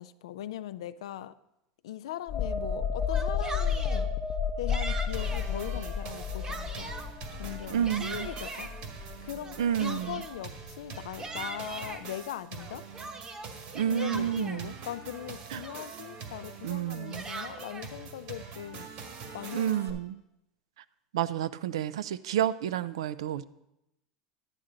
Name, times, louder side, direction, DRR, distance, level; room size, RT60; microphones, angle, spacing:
voice 1, 0.0-1.3 1.8-4.1 4.6-6.9 7.3-8.7 9.2-12.9 13.9-19.1 19.3-20.0, left 12 dB, 85° left, 13 dB, 0.4 m, -40 dB
sound 1, 2.3-9.7 10.1-10.3, left 6 dB, 40° left, 0.7 m, -32 dB
Yell, 3.0-4.0 4.7-5.5 6.0-7.1 7.6-8.7 9.4-10.4 10.9-12.0 12.6-14.6 15.2-15.3 15.6-16.1 16.8-17.9, right 3 dB, 25° right, 0.9 m, -41 dB
sound 2, 5.1-19.9, right 5 dB, 60° right, 1.8 m, -44 dB
voice 2, 7.7-8.3 9.6-10.2 13.7-14.7 15.5-15.6 16.6-17.3 19.5-20.2 21.1-23.4, right 10 dB, 90° right, 16 dB, 0.4 m, -30 dB
10.5 x 9.7 x 3.8 m, 0.87 s
supercardioid pair, 105°, 3 cm